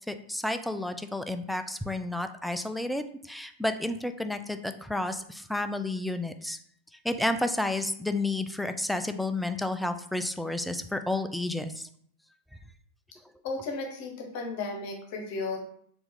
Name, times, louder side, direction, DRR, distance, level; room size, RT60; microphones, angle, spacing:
voice 1, 0.1-6.6 7.0-11.9, left 2 dB, ahead, 8 dB, 0.3 m, -31 dB
voice 2, 13.4-15.6, left 3 dB, 45° left, 1 dB, 1.0 m, -34 dB
4.3 x 2.5 x 3.6 m, 0.65 s
figure-of-eight pair, 90°, 0 cm